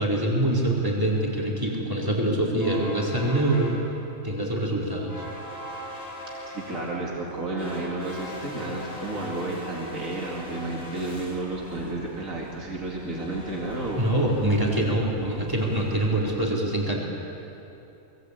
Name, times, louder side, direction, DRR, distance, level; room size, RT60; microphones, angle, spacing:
voice 1, 0.0-3.7 4.2-5.2 14.0-17.1, right 1 dB, 15° right, -3 dB, 4.4 m, -25 dB
sound 1, 2.6-16.4, equal, 70° left, 3.8 m, -41 dB
voice 2, 6.5-14.1 15.2-15.5, right 2 dB, 75° right, -2 dB, 2.9 m, -32 dB
24.5 x 21.0 x 8.4 m, 2.9 s
omnidirectional pair, 1.4 m